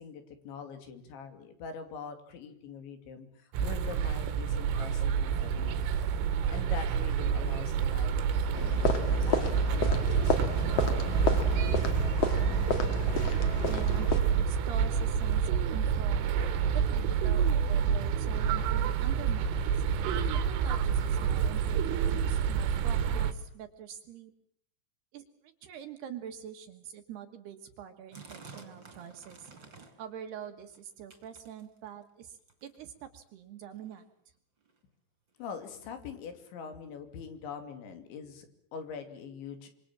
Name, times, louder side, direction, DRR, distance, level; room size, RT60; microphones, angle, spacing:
voice 1, 0.0-6.0 6.5-8.2 8.5-11.1 35.4-39.7, left 6 dB, 65° left, 8 dB, 4.9 m, -44 dB
sound 1, 3.5-23.3, right 7 dB, 85° right, 4.1 m, -28 dB
sound 2, 8.5-14.2, left 4 dB, 45° left, 2.2 m, -32 dB
voice 2, 13.7-16.3 16.7-19.8 20.3-24.3 25.1-29.5 30.0-34.1, right 9 dB, 65° right, 7 dB, 3.1 m, -45 dB
sound 3, 28.1-30.1 30.4-30.8 31.1-32.0 32.5-32.8 33.6-33.7 33.9-34.0 34.6-34.7 35.4-35.5, right 4 dB, 25° right, 3.9 m, -51 dB
26.5 x 25.0 x 7.4 m, 0.64 s
omnidirectional pair, 5.8 m